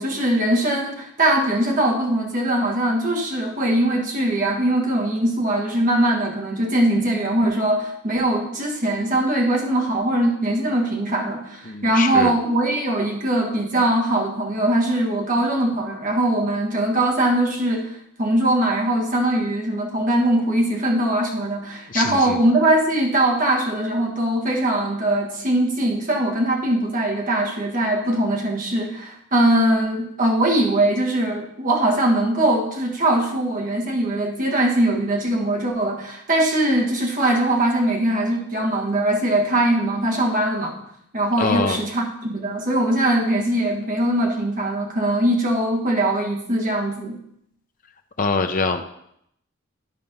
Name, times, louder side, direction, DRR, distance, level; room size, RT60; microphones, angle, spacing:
voice 1, 0.0-40.7 41.1-47.2, right 1 dB, 40° right, 0 dB, 1.6 m, -21 dB
voice 2, 11.6-12.4 21.9-22.4 41.4-41.8 48.2-48.8, left 4 dB, 40° left, 5 dB, 0.6 m, -24 dB
10.5 x 4.4 x 5.4 m, 0.73 s
head